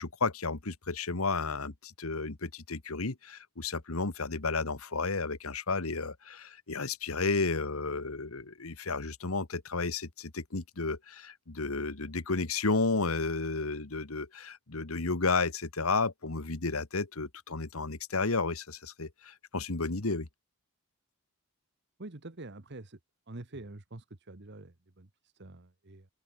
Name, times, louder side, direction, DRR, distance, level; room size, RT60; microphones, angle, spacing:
voice 1, 0.0-20.3, left 3 dB, 80° left, 1.6 m, -32 dB
voice 2, 22.0-23.0 23.3-26.1, right 2 dB, 55° right, 1.4 m, -46 dB
open air
head